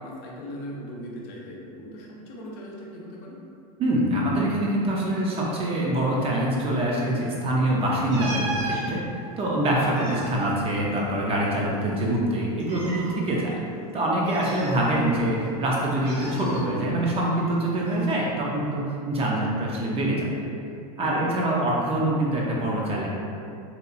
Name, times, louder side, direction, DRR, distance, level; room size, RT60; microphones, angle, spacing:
voice 1, 0.0-3.4 21.0-21.3, left 1 dB, 55° left, -4 dB, 0.6 m, -38 dB
voice 2, 3.8-9.0 9.4-13.6 13.9-20.3 21.0-23.1, right 1 dB, 30° right, -4 dB, 0.5 m, -25 dB
sound 1, 8.1-8.8 9.7-11.4 11.7-11.8 12.6-13.1 14.2-15.3 16.0-16.6 17.8-18.1, right 2 dB, 75° right, 0.7 m, -35 dB
2.9 x 2.2 x 2.5 m, 2.5 s
hypercardioid pair, 105°, 20 cm